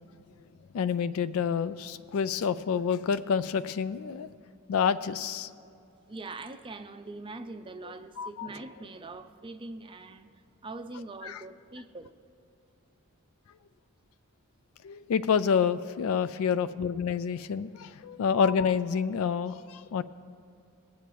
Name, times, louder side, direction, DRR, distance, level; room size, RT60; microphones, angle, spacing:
voice 1, 0.7-4.3 4.7-5.5 7.8-8.5 11.2-11.4 14.8-20.0, left 6 dB, 70° left, 13 dB, 0.3 m, -28 dB
voice 2, 6.1-10.3 10.6-12.1, right 3 dB, 25° right, 8 dB, 0.5 m, -42 dB
19.0 x 8.4 x 3.1 m, 2.6 s
head